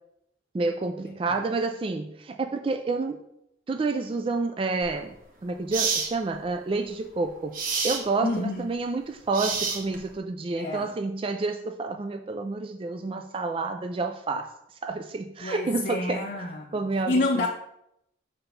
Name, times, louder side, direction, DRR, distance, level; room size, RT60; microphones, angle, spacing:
voice 1, 0.5-3.2 3.7-5.2 5.4-7.6 7.8-14.5 14.8-16.2 16.7-17.5, right 3 dB, 30° right, 5 dB, 0.3 m, -29 dB
sound 1, 4.8-5.0 5.7-6.1 7.5-8.0 9.3-10.1, right 5 dB, 50° right, 0.8 m, -28 dB
voice 2, 8.2-8.6 10.6-10.9 15.4-17.5, left 2 dB, 45° left, -1 dB, 0.6 m, -28 dB
5.9 x 3.3 x 5.5 m, 0.79 s
head